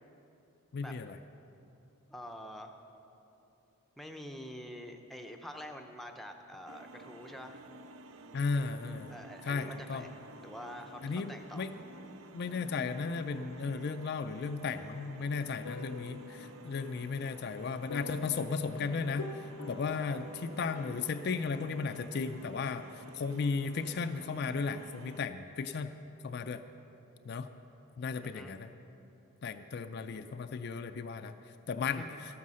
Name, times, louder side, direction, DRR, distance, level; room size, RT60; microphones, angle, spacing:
voice 1, 0.7-1.2 8.3-9.2 9.4-10.0 11.0-11.7 12.3-19.3 19.7-22.8 23.1-25.9 26.2-26.6 27.3-27.5 28.0-28.7 29.4-31.3 31.7-32.0, left 5 dB, 45° left, 8 dB, 0.4 m, -35 dB
voice 2, 2.1-2.8 4.0-7.6 9.1-11.7 19.9-20.3 28.2-28.5 32.0-32.2, equal, ahead, 3 dB, 0.6 m, -46 dB
sound 1, 6.7-25.2, right 2 dB, 65° right, 0.5 m, -52 dB
sound 2, 15.6-21.0, left 3 dB, 90° left, 0.6 m, -46 dB
13.0 x 9.5 x 6.3 m, 2.9 s
head